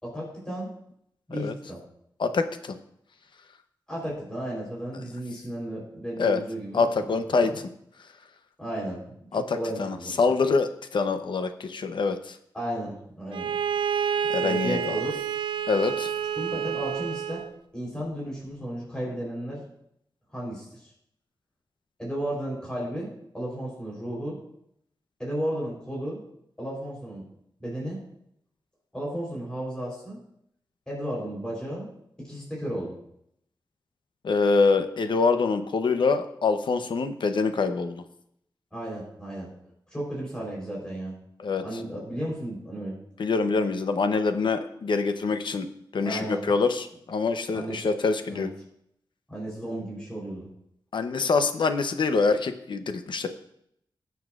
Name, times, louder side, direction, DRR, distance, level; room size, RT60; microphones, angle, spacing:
voice 1, 0.0-0.7 1.3-1.8 3.9-6.8 7.1-7.2 7.4-7.6 8.6-10.2 12.5-13.5 14.4-15.1 16.4-17.4 17.7-19.7 20.3-20.9 22.0-24.4 25.2-26.2 26.6-27.2 27.6-28.0 28.9-30.2 30.9-31.9 32.2-32.9 38.7-39.5 39.9-41.2 41.6-43.0 46.0-46.4 47.5-47.9 48.3-48.5 49.3-50.5, right 1 dB, 10° left, -5 dB, 3.7 m, -34 dB
voice 2, 2.2-2.8 6.2-6.4 6.7-7.5 9.3-12.4 14.3-15.0 15.7-16.1 34.2-38.0 41.4-41.6 43.2-45.7 45.9-48.5 50.9-53.3, left 4 dB, 70° left, 8 dB, 0.7 m, -25 dB
Bowed string instrument, 13.3-17.5, right 8 dB, 75° right, 0.3 m, -29 dB
19.0 x 7.1 x 2.4 m, 0.73 s
wide cardioid pair, 130°, 8 cm